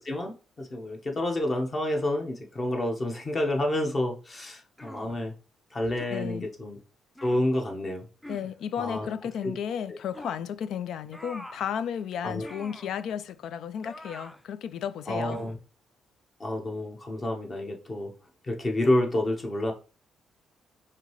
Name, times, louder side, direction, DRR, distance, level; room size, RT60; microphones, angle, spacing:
voice 1, 0.0-5.3 5.7-6.8 7.2-8.0 8.8-9.1 9.4-9.5 12.2-12.5 15.1-15.6 16.4-18.1 18.4-19.7, left 1 dB, 35° left, 1.0 m, -29 dB
sound 1, 4.8-5.2 6.0-6.2 7.2-7.5 8.2-8.5 10.1-10.4 11.1-11.7 12.4-12.9 13.8-14.4 15.3-15.6, equal, 10° left, 0.5 m, -44 dB
voice 2, 6.1-6.5 8.3-15.4, left 8 dB, 75° left, 0.3 m, -33 dB
4.9 x 2.7 x 3.1 m
cardioid pair, 90°, 0 cm